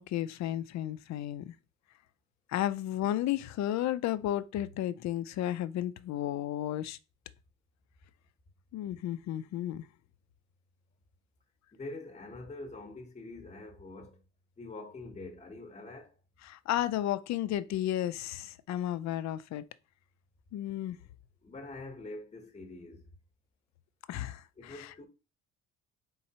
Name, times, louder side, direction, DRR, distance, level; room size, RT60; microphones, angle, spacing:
voice 1, 0.0-1.5 2.5-7.0 8.7-9.9 16.4-19.6 20.5-21.0 24.1-25.0, left 12 dB, 65° left, 0.5 m, -33 dB
voice 2, 11.7-14.2 14.6-16.1 21.4-23.1 24.6-25.0, left 2 dB, 25° left, 0.9 m, -45 dB
4.3 x 3.8 x 2.8 m
cardioid pair, 105°, 30 cm